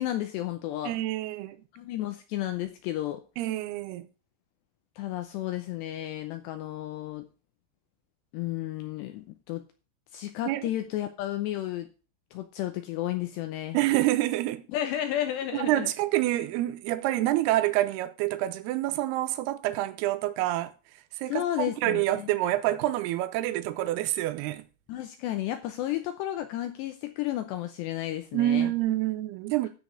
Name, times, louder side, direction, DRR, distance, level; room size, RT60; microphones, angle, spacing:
voice 1, 0.0-1.0 1.7-3.2 5.0-7.3 8.3-9.6 10.1-11.9 12.3-13.8 14.7-15.9 21.3-22.3 24.9-28.7, left 13 dB, 80° left, 2.6 m, -32 dB
voice 2, 0.8-1.6 3.4-4.1 10.5-10.7 13.7-14.6 15.5-20.7 21.2-24.6 28.3-29.7, right 15 dB, 75° right, 2.4 m, -27 dB
13.0 x 5.2 x 6.4 m
omnidirectional pair, 5.6 m